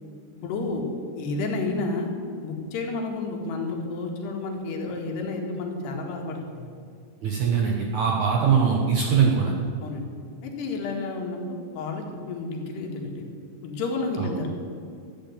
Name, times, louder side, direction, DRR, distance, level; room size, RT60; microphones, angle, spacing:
voice 1, 0.4-0.8 1.2-2.1 2.4-6.6 9.8-10.1 10.4-13.2 13.6-14.5, left 3 dB, 75° left, 1 dB, 3.9 m, -31 dB
voice 2, 7.2-9.5, right 6 dB, 65° right, 0 dB, 2.0 m, -21 dB
14.0 x 9.2 x 9.3 m, 2.3 s
omnidirectional pair, 4.9 m